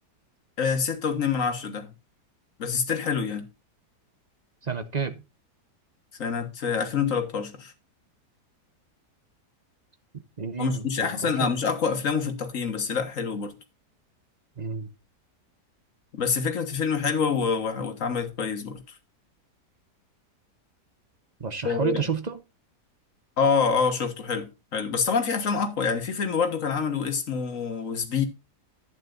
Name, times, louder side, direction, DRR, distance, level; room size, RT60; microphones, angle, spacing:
voice 1, 0.6-1.9 2.6-3.5 6.2-7.7 10.6-13.5 16.1-18.8 21.6-21.9 23.4-28.2, left 5 dB, 50° left, 1.8 m, -26 dB
voice 2, 4.6-5.2 10.4-11.5 14.6-14.9 21.4-22.4, right 6 dB, 35° right, 0.7 m, -30 dB
11.0 x 9.2 x 2.5 m
omnidirectional pair, 1.8 m